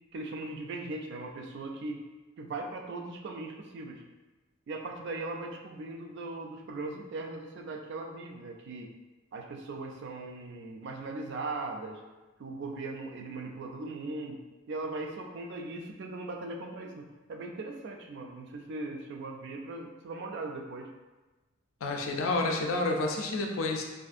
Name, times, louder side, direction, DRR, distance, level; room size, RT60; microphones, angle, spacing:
voice 1, 0.1-2.0 2.4-4.0 4.7-8.9 9.3-12.0 12.4-14.4 14.7-20.9, right 2 dB, 55° right, 2 dB, 0.3 m, -39 dB
voice 2, 21.8-23.8, left 2 dB, 75° left, 2 dB, 0.4 m, -29 dB
2.6 x 2.4 x 2.4 m, 1.2 s
head